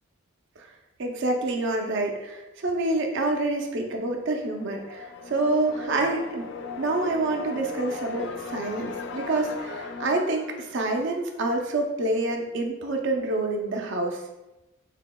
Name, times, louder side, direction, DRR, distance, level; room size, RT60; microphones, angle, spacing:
voice 1, 1.0-6.5 6.8-14.2, right 2 dB, 55° right, 3 dB, 0.5 m, -27 dB
sound 1, 4.0-11.8, left 4 dB, 55° left, 0.3 m, -38 dB
5.9 x 2.8 x 2.3 m, 1.0 s
head